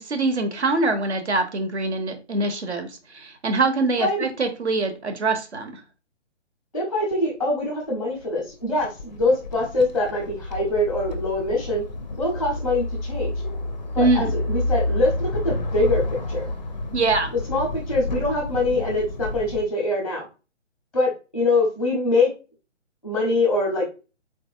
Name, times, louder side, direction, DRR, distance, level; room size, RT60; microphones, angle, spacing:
voice 1, 0.0-5.8 14.0-14.3 16.9-17.3, right 3 dB, 65° right, 7 dB, 1.0 m, -24 dB
voice 2, 6.7-11.8 12.2-13.3 13.9-16.5 17.5-20.3 20.9-22.3 23.0-23.9, left 2 dB, ahead, -1 dB, 0.7 m, -24 dB
sound 1, 7.1-7.2 8.2-19.7, left 2 dB, 40° left, 0.4 m, -29 dB
4.0 x 3.0 x 2.4 m, 0.31 s
figure-of-eight pair, 145°, 36 cm